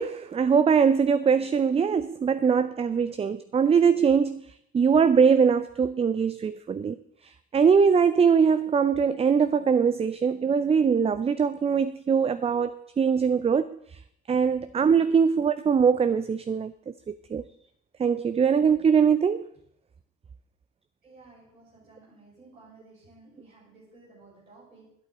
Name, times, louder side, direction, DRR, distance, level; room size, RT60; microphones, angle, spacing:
voice 1, 0.0-7.0 7.2-14.0 14.3-17.4 18.0-19.5, right 6 dB, 15° right, 0.4 m, -22 dB
voice 2, 21.0-24.9, right 3 dB, 85° right, 5.9 m, -54 dB
22.0 x 8.8 x 4.0 m
figure-of-eight pair, 50°, 39 cm